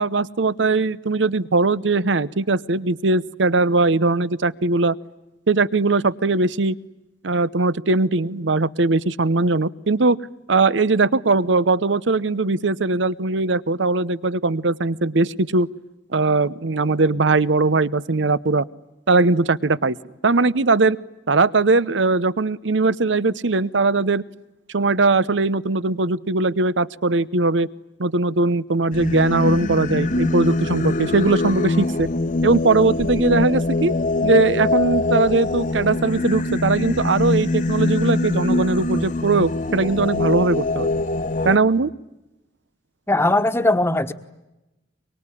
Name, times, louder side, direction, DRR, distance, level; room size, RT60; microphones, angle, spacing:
voice 1, 0.0-5.0 5.5-6.8 7.2-10.2 10.5-15.7 16.1-18.7 19.1-20.0 20.2-21.0 21.3-24.2 24.7-27.7 28.0-32.1 32.4-33.9 34.2-40.9 41.4-41.9, right 3 dB, 90° right, 18 dB, 0.9 m, -20 dB
Singing, 28.9-41.6, left 2 dB, 45° left, 1.0 m, -23 dB
voice 2, 43.1-44.1, left 2 dB, 15° left, 10 dB, 1.3 m, -19 dB
24.5 x 24.0 x 10.0 m, 0.97 s
head